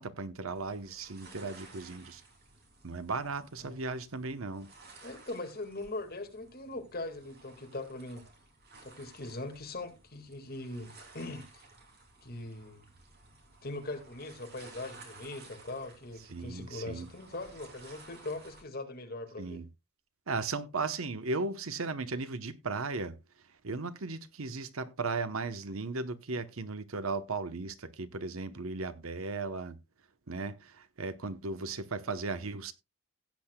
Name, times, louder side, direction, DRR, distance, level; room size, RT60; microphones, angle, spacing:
voice 1, 0.0-2.2 2.8-4.7 16.3-17.1 19.4-19.7 20.3-23.2 23.6-29.8 30.3-32.7, right 3 dB, 75° right, 0.9 m, -36 dB
sound 1, 0.5-18.6, right 3 dB, 45° right, 2.7 m, -56 dB
voice 2, 5.0-8.2 8.8-11.5 12.2-12.8 13.6-19.6, left 2 dB, 45° left, 1.9 m, -41 dB
16.5 x 8.4 x 2.2 m
head